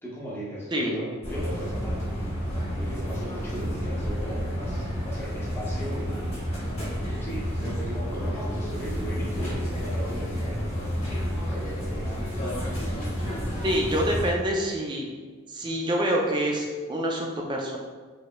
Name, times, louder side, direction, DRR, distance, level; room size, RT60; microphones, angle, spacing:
voice 1, 0.0-2.0 2.8-6.2 7.2-10.6 10.9-11.8, equal, 10° left, -7 dB, 0.7 m, -37 dB
sound 1, 1.2-14.3, equal, 30° left, 1.0 m, -30 dB
voice 2, 13.6-15.1 15.5-17.8, equal, 20° right, 0 dB, 0.3 m, -26 dB
3.1 x 2.7 x 2.2 m, 1.5 s
head